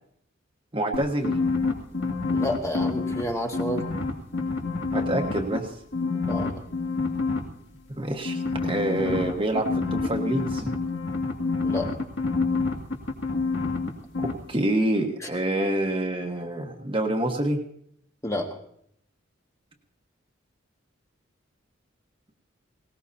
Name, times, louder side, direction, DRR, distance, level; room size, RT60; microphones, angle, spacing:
voice 1, 0.7-1.3 4.9-5.7 8.0-10.7 14.2-17.6, right 1 dB, 25° right, 2 dB, 1.3 m, -27 dB
sound 1, 0.9-3.2 3.5-5.6 5.9-7.4 8.2-13.9 14.1-14.3, left 3 dB, 60° left, 2.3 m, -27 dB
voice 2, 2.3-3.9 6.2-6.6 11.6-11.9 18.2-18.6, left 1 dB, 15° left, 2 dB, 1.6 m, -29 dB
19.5 x 18.5 x 2.8 m, 0.68 s
head